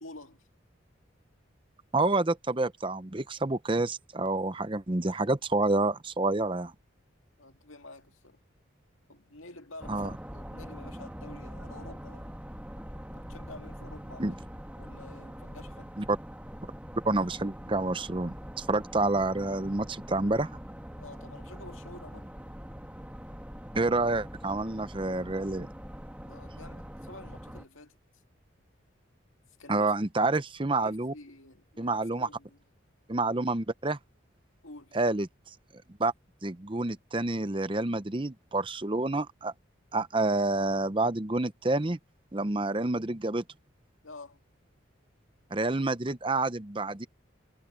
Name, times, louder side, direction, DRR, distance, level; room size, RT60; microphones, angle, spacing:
voice 1, 0.0-0.5 7.4-8.4 9.1-12.3 13.1-14.4 14.8-15.9 21.0-22.3 26.3-28.0 29.6-29.9 30.8-32.6 34.6-35.0 44.0-44.4, left 2 dB, 90° left, 2.2 m, -49 dB
voice 2, 1.9-6.7 9.9-10.1 14.2-14.3 16.0-16.2 17.0-20.5 23.7-25.7 29.7-31.1 31.8-32.3 33.1-34.0 34.9-35.3 36.0-36.1 36.4-39.5 39.9-42.0 42.3-43.4 45.5-47.1, right 2 dB, 25° right, 0.7 m, -28 dB
sound 1, 9.8-27.6, equal, 5° right, 2.0 m, -43 dB
head